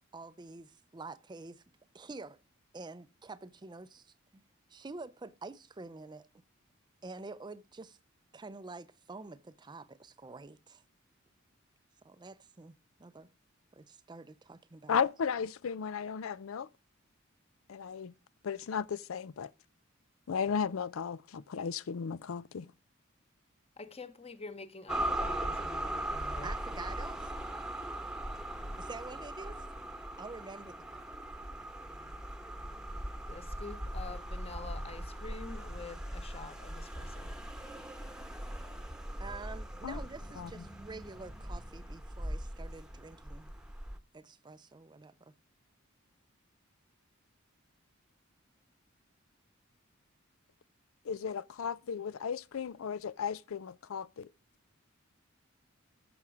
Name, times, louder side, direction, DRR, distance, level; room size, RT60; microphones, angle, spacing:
voice 1, 0.1-1.6 1.9-2.4 2.7-4.4 4.7-6.3 7.0-8.0 8.3-10.8 12.0-12.7 13.0-13.3 13.7-15.0 26.4-27.3 28.8-29.7 30.2-30.8 39.2-43.5 44.1-45.3, right 3 dB, 20° right, 0.5 m, -47 dB
voice 2, 14.9-16.7 17.7-18.1 18.4-19.5 20.3-22.7 39.8-40.0 40.4-40.5 51.1-54.3, left 6 dB, 75° left, 0.4 m, -35 dB
voice 3, 23.8-26.5 33.3-37.3, left 3 dB, 30° left, 1.1 m, -47 dB
sound 1, 24.9-44.0, right 1 dB, 5° right, 1.0 m, -40 dB
14.0 x 6.1 x 4.9 m
head